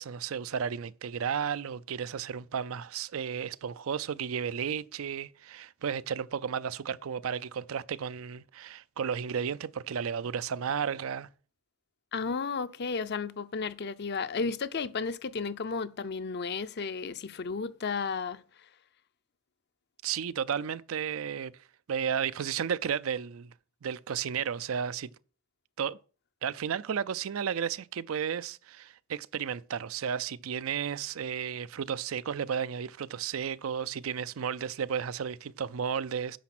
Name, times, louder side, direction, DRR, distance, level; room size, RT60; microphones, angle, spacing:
voice 1, 0.0-11.3 20.0-21.5 21.9-23.5 23.8-25.1 25.8-26.0 26.4-36.4, right 7 dB, 85° right, 0.5 m, -33 dB
voice 2, 12.1-18.4, left 5 dB, 55° left, 0.6 m, -33 dB
10.0 x 6.0 x 6.0 m
head